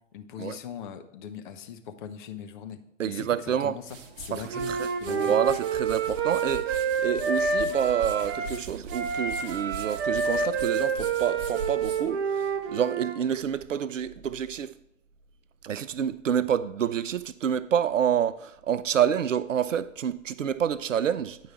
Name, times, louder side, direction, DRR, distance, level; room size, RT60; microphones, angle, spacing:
voice 1, 0.1-4.7 5.0-5.3, left 8 dB, 40° left, 0.8 m, -40 dB
voice 2, 3.0-3.8 4.3-14.7 15.6-21.4, right 9 dB, 70° right, 0.5 m, -28 dB
sound 1, 3.6-13.0, right 3 dB, 40° right, 0.9 m, -42 dB
Wind instrument woodwind instrument, 4.5-8.6 8.9-13.1, right 5 dB, 15° right, 0.5 m, -28 dB
9.3 x 4.7 x 4.5 m
figure-of-eight pair, 110°, 39 cm